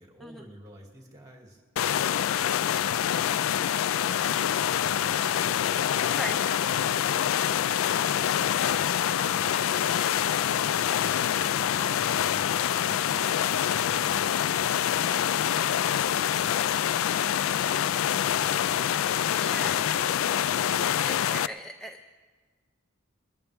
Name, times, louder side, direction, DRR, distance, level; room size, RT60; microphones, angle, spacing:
voice 1, 0.0-1.6 1.9-3.5 4.1-5.9 9.1-13.3 13.7-19.0 19.5-20.1, right 1 dB, 20° right, 1 dB, 2.5 m, -50 dB
sound 1, 1.8-21.5, left 10 dB, 75° left, 0.3 m, -26 dB
voice 2, 6.1-6.4 19.3-19.8 21.0-22.0, right 1 dB, ahead, 6 dB, 0.4 m, -38 dB
22.0 x 14.0 x 3.5 m, 1.5 s
head